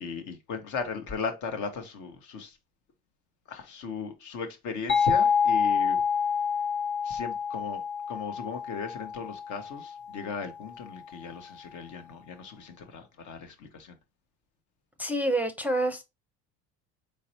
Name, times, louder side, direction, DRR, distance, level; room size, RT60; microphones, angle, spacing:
voice 1, 0.0-2.6 3.5-6.0 7.0-7.8 8.1-14.0, left 5 dB, 60° left, 1.1 m, -37 dB
sound 1, 4.9-10.4, left 6 dB, 35° left, 1.0 m, -27 dB
voice 2, 15.0-16.0, right 1 dB, 5° right, 0.6 m, -27 dB
3.9 x 3.3 x 2.7 m
hypercardioid pair, 70°, 34 cm